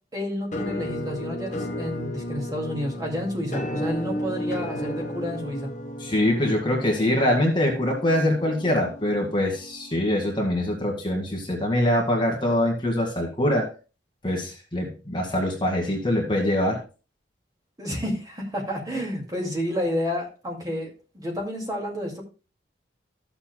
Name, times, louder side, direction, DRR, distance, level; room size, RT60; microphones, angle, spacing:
voice 1, 0.1-5.7 17.8-22.2, equal, 20° right, -1 dB, 2.2 m, -30 dB
Musical instrument, 0.5-10.3, left 1 dB, 40° left, 1.1 m, -34 dB
voice 2, 6.0-13.7 14.2-16.8, left 1 dB, 25° left, 0 dB, 2.0 m, -24 dB
14.0 x 7.1 x 2.2 m, 0.33 s
head